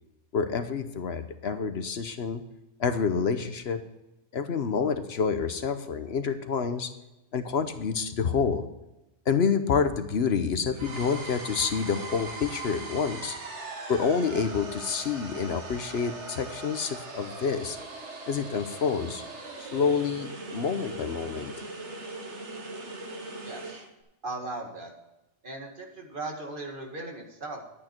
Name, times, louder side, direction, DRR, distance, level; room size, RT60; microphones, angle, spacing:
voice 1, 0.3-2.4 2.8-3.8 4.3-6.9 7.3-8.6 9.3-13.4 13.9-17.8 18.3-19.2 19.6-21.6, left 6 dB, 65° left, 9 dB, 1.0 m, -28 dB
sound 1, 10.7-23.9, right 3 dB, 75° right, 1.8 m, -40 dB
voice 2, 23.4-23.8 24.2-24.9 25.4-27.6, right 2 dB, 45° right, 1 dB, 2.0 m, -38 dB
11.0 x 8.8 x 4.4 m, 0.98 s
omnidirectional pair, 1.2 m